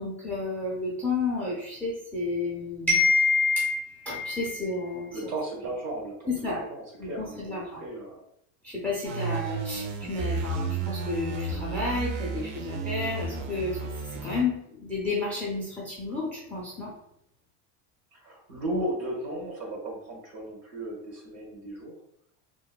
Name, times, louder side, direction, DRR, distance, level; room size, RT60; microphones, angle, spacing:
voice 1, 0.0-5.3 6.3-6.6 7.0-7.8 8.6-16.9, left 3 dB, 5° left, -6 dB, 0.4 m, -30 dB
voice 2, 5.1-8.2 9.2-9.4 18.1-21.9, right 1 dB, 65° right, -2 dB, 1.3 m, -35 dB
sound 1, 9.0-14.4, right 3 dB, 80° right, 0.6 m, -32 dB
2.9 x 2.1 x 2.3 m, 0.73 s
cardioid pair, 140°, 40 cm